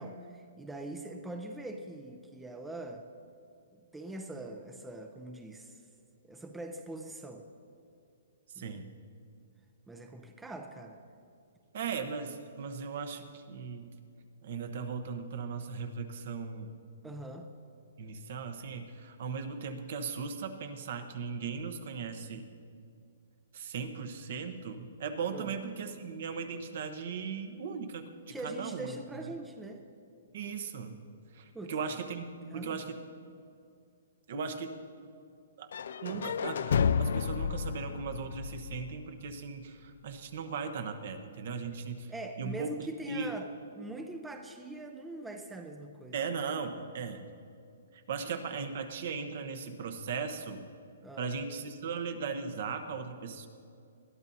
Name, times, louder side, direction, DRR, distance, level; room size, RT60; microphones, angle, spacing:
voice 1, 0.0-3.1 3.9-5.8 6.3-7.5 8.6-8.8 9.9-11.0 17.0-17.5 25.3-25.5 28.3-29.8 31.5-32.0 32.5-32.8 36.1-36.3 42.1-43.5 43.7-46.1 51.0-51.3, right 2 dB, 5° right, 4 dB, 0.6 m, -42 dB
voice 2, 8.5-8.9 11.7-13.9 14.4-16.7 18.0-22.5 23.5-28.9 29.2-29.3 30.3-31.0 31.3-33.0 34.3-34.8 35.6-35.7 36.0-42.1 42.4-43.3 46.1-47.2 47.9-50.6 51.2-53.5, right 5 dB, 55° right, 8 dB, 1.0 m, -38 dB
sound 1, 35.7-39.6, left 6 dB, 70° left, 0.4 m, -31 dB
20.5 x 12.5 x 2.7 m, 2.4 s
hypercardioid pair, 155°, 0 cm